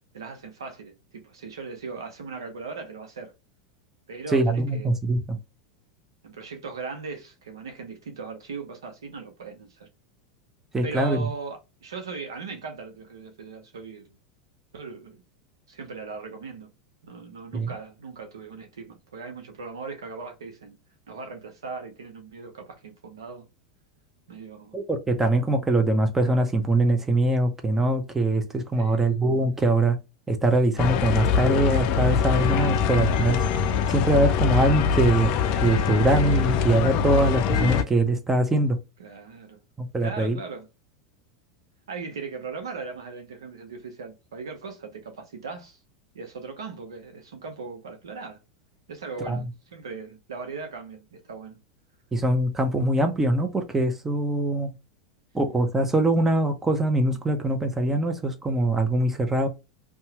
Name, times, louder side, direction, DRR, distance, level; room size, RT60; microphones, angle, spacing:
voice 1, 0.1-3.3 4.1-4.9 6.2-9.9 10.8-14.2 14.7-15.2 15.7-16.7 17.0-20.8 21.1-23.5 24.3-24.8 28.8-29.2 39.0-39.6 40.0-40.7 41.9-45.8 46.1-48.4 48.9-51.6, right 4 dB, 85° right, 0.8 m, -38 dB
voice 2, 4.3-5.4 10.7-11.2 17.5-17.7 24.7-29.9 30.3-33.4 33.9-35.3 35.6-38.8 39.8-40.4 49.3-49.4 52.1-54.7 55.3-59.5, right 1 dB, 15° right, 0.7 m, -23 dB
sound 1, 30.8-37.8, left 7 dB, 50° left, 0.4 m, -23 dB
2.8 x 2.3 x 2.8 m
hypercardioid pair, 105°, 2 cm